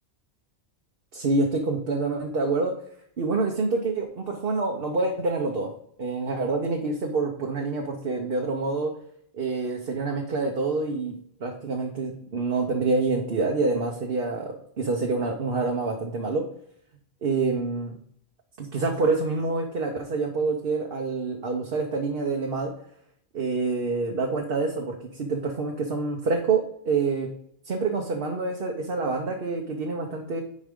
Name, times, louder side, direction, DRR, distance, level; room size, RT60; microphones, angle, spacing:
voice 1, 1.1-2.7 3.2-5.7 6.0-8.9 9.3-11.1 11.4-16.5 17.2-17.9 18.6-22.7 23.3-27.3 27.7-30.4, right 3 dB, 60° right, 1 dB, 1.1 m, -27 dB
10.0 x 4.7 x 3.7 m, 0.69 s
omnidirectional pair, 1.1 m